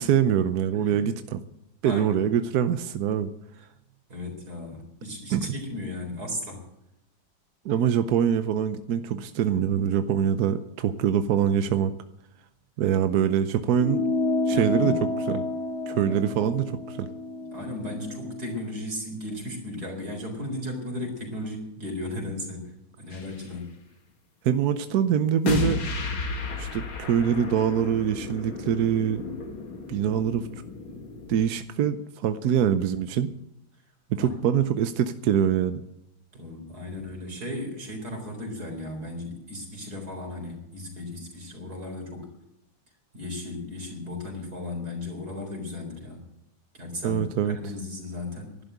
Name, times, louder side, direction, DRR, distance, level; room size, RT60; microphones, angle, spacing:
voice 1, 0.0-1.4 1.8-3.3 5.3-5.5 7.6-11.9 12.8-14.0 14.5-14.9 15.3-15.5 15.9-17.1 24.4-25.8 26.6-29.2 29.9-30.5 31.3-33.3 34.1-35.8 47.0-47.6, right 9 dB, 65° right, 9 dB, 1.0 m, -24 dB
voice 2, 0.7-1.1 1.8-2.2 4.1-6.6 14.5-15.0 16.0-16.4 17.5-23.8 34.2-34.4 36.3-42.3 43.1-46.2 46.7-48.6, left 1 dB, 50° right, 2 dB, 4.7 m, -36 dB
sound 1, 13.8-18.6, left 2 dB, 50° left, 0.8 m, -29 dB
sound 2, 23.1-23.4 25.5-31.4, left 4 dB, 80° left, 2.7 m, -33 dB
12.0 x 11.5 x 8.0 m, 0.83 s
omnidirectional pair, 2.2 m